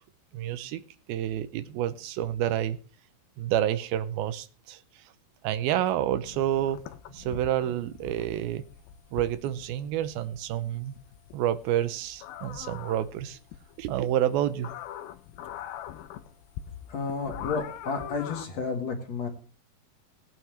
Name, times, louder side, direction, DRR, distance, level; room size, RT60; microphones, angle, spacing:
voice 1, 0.3-0.8 1.1-2.8 3.4-4.8 5.4-6.8 7.1-8.6 9.1-11.0 11.3-13.4 13.8-14.7, right 11 dB, 80° right, 13 dB, 2.6 m, -29 dB
sound 1, 6.3-18.5, left 11 dB, 80° left, 2.6 m, -43 dB
voice 2, 16.9-19.3, left 4 dB, 50° left, 3 dB, 2.8 m, -31 dB
19.5 x 9.2 x 3.3 m, 0.38 s
omnidirectional pair, 4.3 m